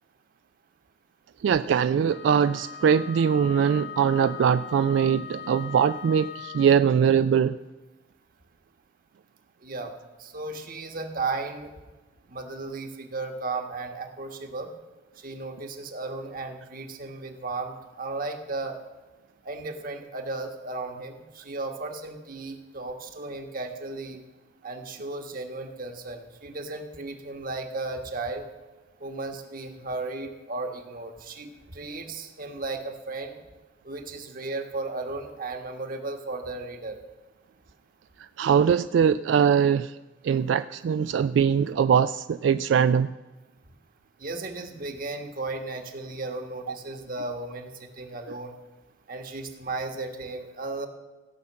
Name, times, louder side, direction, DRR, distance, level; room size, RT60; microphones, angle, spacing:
voice 1, 1.4-7.5 38.4-39.9 40.2-43.1 46.7-46.8, right 7 dB, 85° right, 13 dB, 0.3 m, -22 dB
Wind instrument woodwind instrument, 2.1-6.8, left 6 dB, 70° left, 0.9 m, -40 dB
voice 2, 9.6-9.9 10.2-11.7 12.3-14.7 15.2-18.8 19.4-24.2 24.6-28.5 29.0-33.4 33.8-37.0 44.2-48.5 49.1-50.9, right 3 dB, 50° right, 5 dB, 1.4 m, -35 dB
15.5 x 5.7 x 7.5 m, 1.2 s
head